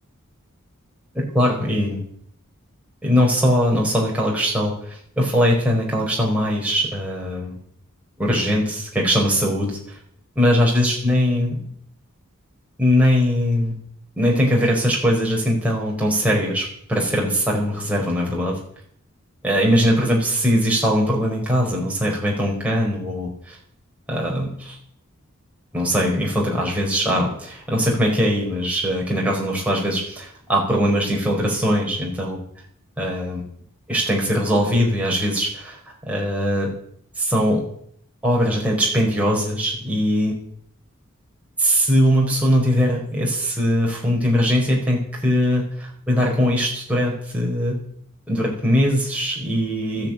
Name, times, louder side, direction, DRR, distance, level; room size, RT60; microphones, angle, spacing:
voice 1, 1.1-2.0 3.0-7.6 8.2-10.0 10.3-11.6 12.8-13.7 14.2-18.6 19.4-23.6 24.1-24.8 25.7-32.4 33.0-33.4 33.9-35.8 36.1-36.7 37.2-37.6 38.2-40.4 41.6-47.8 48.3-50.1, equal, 5° right, -3 dB, 4.7 m, -21 dB
14.0 x 10.5 x 8.9 m, 0.66 s
head